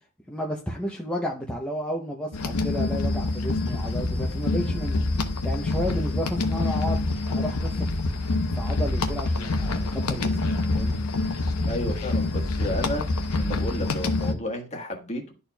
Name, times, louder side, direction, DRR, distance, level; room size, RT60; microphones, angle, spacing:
voice 1, 0.3-5.0 5.4-7.9 8.5-11.0, equal, 5° left, 0.6 m, -32 dB
sound 1, 2.3-14.3, left 2 dB, 85° left, 0.8 m, -26 dB
voice 2, 11.7-13.1 13.4-15.3, left 1 dB, 30° left, 1.3 m, -32 dB
12.0 x 4.4 x 2.2 m
head